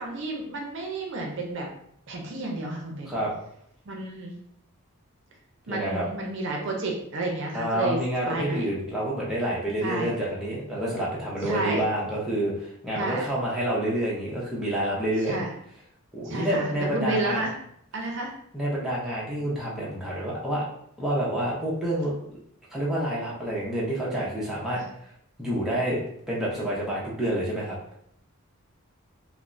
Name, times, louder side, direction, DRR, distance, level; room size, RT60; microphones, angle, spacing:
voice 1, 0.0-1.7 2.1-3.1 3.9-4.3 5.7-8.0 8.3-8.7 9.8-10.1 11.4-11.8 12.9-13.3 15.2-15.5 16.2-17.5 17.9-18.3 24.7-24.9, right 2 dB, 55° right, 0 dB, 0.5 m, -31 dB
voice 2, 5.7-6.1 7.5-15.4 16.1-17.4 18.5-20.6 21.0-22.4 22.7-24.8 25.4-26.0 26.3-27.7, right 1 dB, ahead, -7 dB, 0.6 m, -28 dB
3.3 x 2.0 x 2.5 m, 0.70 s
head